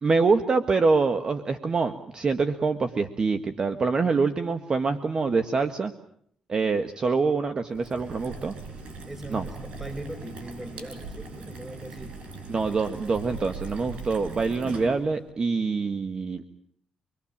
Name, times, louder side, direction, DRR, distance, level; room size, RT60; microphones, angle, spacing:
voice 1, 0.0-5.9 6.5-8.5 9.3-9.4 12.5-16.4, right 4 dB, 45° right, 7 dB, 1.6 m, -25 dB
sound 1, 7.7-15.3, right 3 dB, 70° right, 6.1 m, -40 dB
voice 2, 9.1-12.2, right 1 dB, 15° right, 7 dB, 5.4 m, -40 dB
26.5 x 22.5 x 7.4 m, 0.66 s
cardioid pair, 80°, 2 cm